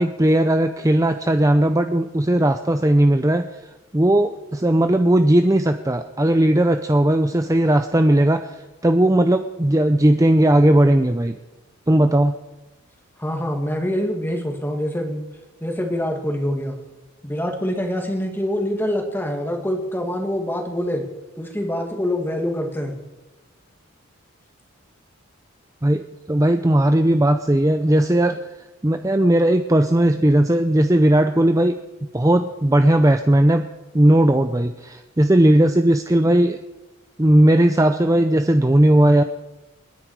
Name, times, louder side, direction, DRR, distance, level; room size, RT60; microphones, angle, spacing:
voice 1, 0.0-3.5 3.9-11.3 11.9-12.3 25.8-28.4 28.8-31.8 32.1-33.7 33.9-36.6 37.2-39.2, right 1 dB, 15° right, 7 dB, 0.5 m, -17 dB
voice 2, 13.2-15.2 15.6-16.7 17.2-21.0 21.4-23.0, equal, 10° left, 3 dB, 2.1 m, -25 dB
29.5 x 10.0 x 4.8 m, 1.1 s
head